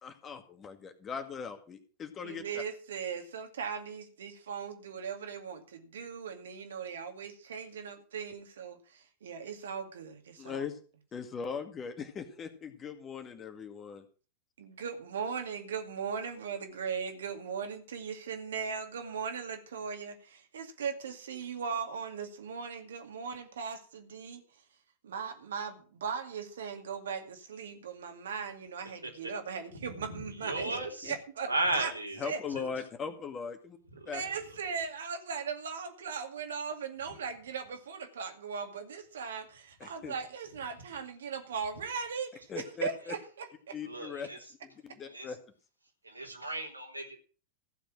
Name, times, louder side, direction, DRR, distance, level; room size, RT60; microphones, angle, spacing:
voice 1, 0.0-2.4 10.4-10.8 11.1-14.0 31.0-31.1 32.2-33.8 34.1-34.2 39.8-40.1 42.5-43.1 43.7-44.3 44.8-45.4, left 6 dB, 25° left, 2.0 m, -39 dB
voice 2, 2.2-10.6 14.6-24.6 25.0-31.9 32.2-32.4 32.8-32.9 34.1-43.8, right 6 dB, 65° right, 2.3 m, -38 dB
voice 3, 30.4-31.1 31.5-32.2 32.6-32.7 43.8-44.4 45.0-45.3 46.0-47.2, right 2 dB, 85° right, 3.5 m, -34 dB
15.0 x 7.1 x 6.3 m
figure-of-eight pair, 90°, 0 cm